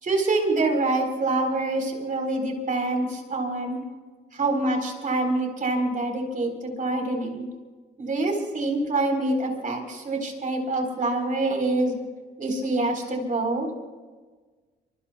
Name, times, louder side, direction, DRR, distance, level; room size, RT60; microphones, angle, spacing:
voice 1, 0.0-3.8 4.3-7.4 8.0-11.9 12.4-13.7, right 2 dB, 40° right, 3 dB, 4.1 m, -26 dB
24.5 x 23.5 x 2.3 m, 1.4 s
cardioid pair, 90°, 20 cm